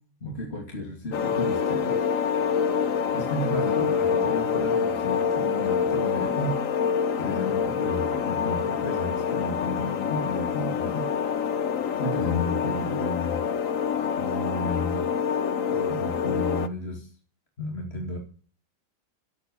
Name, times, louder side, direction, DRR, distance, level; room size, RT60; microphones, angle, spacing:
voice 1, 0.2-2.0 3.1-6.5 7.2-11.1 12.0-13.4 14.2-15.0 15.7-17.1 17.6-18.2, left 1 dB, 35° left, 1 dB, 2.8 m, -32 dB
sound 1, 1.1-16.7, left 7 dB, 55° left, 1.2 m, -26 dB
18.0 x 8.4 x 6.9 m, 0.41 s
omnidirectional pair, 1.9 m